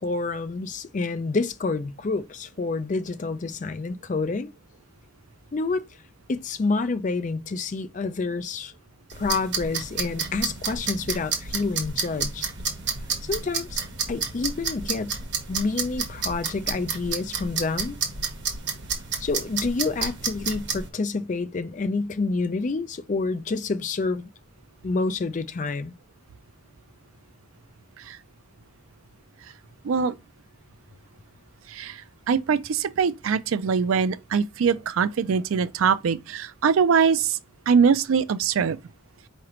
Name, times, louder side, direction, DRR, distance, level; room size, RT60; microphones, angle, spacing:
voice 1, 0.0-4.5 5.5-5.8 6.3-8.7 9.2-12.5 13.2-13.8 14.1-15.1 15.5-18.0 19.2-24.3 24.8-25.9, left 3 dB, 35° left, 0.4 m, -28 dB
sound 1, 9.1-20.9, right 5 dB, 55° right, 1.3 m, -30 dB
voice 2, 29.8-30.2 31.7-32.0 32.3-37.4 37.7-38.8, right 6 dB, 90° right, 0.4 m, -22 dB
4.8 x 3.1 x 3.0 m
head